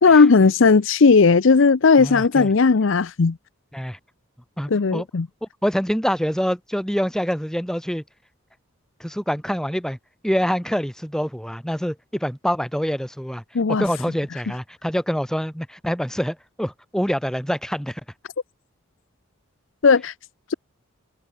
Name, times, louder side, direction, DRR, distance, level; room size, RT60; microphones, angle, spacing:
voice 1, 0.0-3.4 4.7-5.3 13.5-13.8 19.8-20.1, left 4 dB, 65° left, 0.6 m, -16 dB
voice 2, 2.0-2.5 3.7-4.0 4.6-5.1 5.4-8.0 9.0-10.0 10.2-13.4 13.7-18.0, equal, 5° left, 4.1 m, -25 dB
head